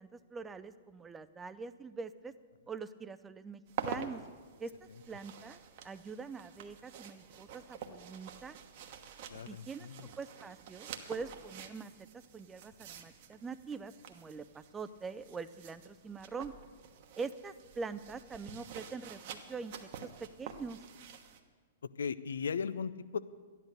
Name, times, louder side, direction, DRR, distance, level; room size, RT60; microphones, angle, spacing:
voice 1, 0.0-2.3 2.7-4.2 4.6-4.7 5.1-5.6 5.8-8.5 9.5-9.9 10.2-11.9 12.3-16.5 17.2-19.8 20.0-20.8, right 4 dB, 15° right, 13 dB, 0.5 m, -43 dB
sound 1, 3.7-21.4, right 7 dB, 50° right, 1.2 m, -48 dB
voice 2, 9.3-10.1 22.0-23.2, left 6 dB, 70° left, 15 dB, 0.5 m, -37 dB
13.0 x 10.5 x 6.6 m, 1.5 s
figure-of-eight pair, 105°, 0 cm